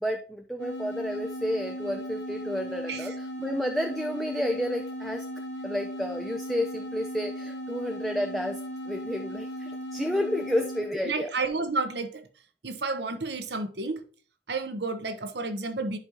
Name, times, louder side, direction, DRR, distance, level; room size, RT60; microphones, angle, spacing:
voice 1, 0.0-5.2 5.6-8.6 8.9-11.3, left 1 dB, ahead, 0.5 m, -31 dB
sound 1, 0.6-11.0, equal, 75° left, 1.3 m, -37 dB
voice 2, 11.0-12.3 12.6-14.0 14.5-16.0, right 3 dB, 70° right, 1.0 m, -31 dB
10.5 x 5.2 x 2.9 m
head